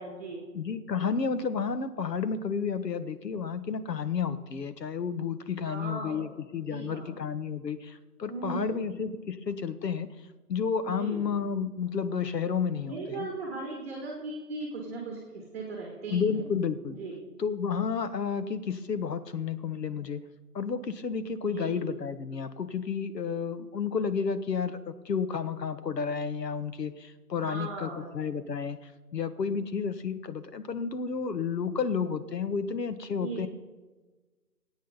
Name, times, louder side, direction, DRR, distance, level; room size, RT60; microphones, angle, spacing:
voice 1, 0.0-0.4 5.6-6.3 6.7-7.1 8.3-8.9 10.9-11.3 12.8-16.5 16.9-17.2 21.4-21.8 27.4-28.2 33.1-33.5, right 3 dB, 10° right, 0 dB, 1.3 m, -38 dB
voice 2, 0.5-10.1 10.5-13.3 16.1-17.0 17.4-20.2 20.5-33.5, left 6 dB, 80° left, 12 dB, 1.2 m, -31 dB
19.5 x 8.7 x 4.0 m, 1.3 s
hypercardioid pair, 170°, 48 cm